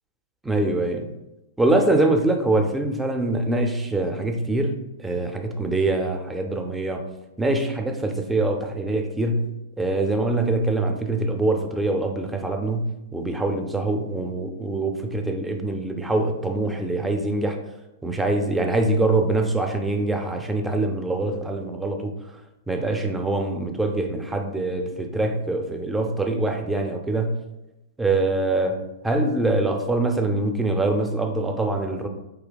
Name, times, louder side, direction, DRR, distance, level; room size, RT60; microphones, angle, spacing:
voice 1, 0.4-1.1 1.6-7.0 7.4-9.5 9.8-17.6 18.0-22.1 22.7-27.4 28.0-32.1, right 2 dB, 10° right, 4 dB, 0.5 m, -24 dB
4.0 x 2.8 x 3.9 m, 0.98 s
hypercardioid pair, 110°, 0 cm